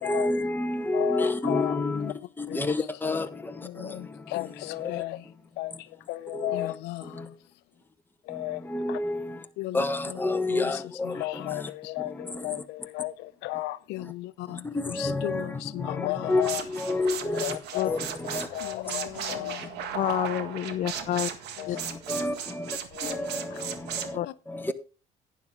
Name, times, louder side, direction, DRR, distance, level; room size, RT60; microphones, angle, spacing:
voice 1, 0.0-3.3 6.3-6.7 8.6-9.4 9.7-11.2 11.5-11.7 12.3-12.4 14.7-17.6 17.8-18.5 22.1-22.7 23.0-23.8 24.1-24.2 24.5-24.7, left 2 dB, 10° left, 1.3 m, -29 dB
voice 2, 0.9-2.1 2.5-2.6 3.6-7.3 8.2-9.0 9.6-10.2 10.5-20.0 21.6-21.9 22.9-23.7 24.2-24.3, left 18 dB, 90° left, 0.6 m, -35 dB
sound 1, 16.3-24.1, right 8 dB, 80° right, 1.8 m, -36 dB
voice 3, 19.9-21.3 21.7-21.8 24.1-24.3, left 12 dB, 50° left, 0.5 m, -28 dB
11.5 x 10.0 x 3.7 m
cardioid pair, 110°, 17 cm